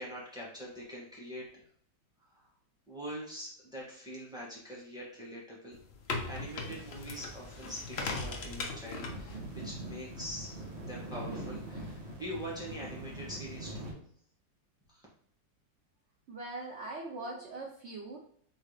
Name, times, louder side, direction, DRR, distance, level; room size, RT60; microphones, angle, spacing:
voice 1, 0.0-1.4 2.4-2.5 2.9-5.8 6.3-13.9 14.9-15.1, equal, ahead, -7 dB, 1.5 m, -43 dB
sound 1, 5.7-11.9, left 3 dB, 65° left, 0.6 m, -41 dB
sound 2, 6.2-13.9, right 2 dB, 40° right, 1.3 m, -44 dB
voice 2, 16.3-18.2, right 2 dB, 85° right, -1 dB, 0.6 m, -41 dB
4.4 x 3.7 x 3.2 m, 0.62 s
omnidirectional pair, 2.0 m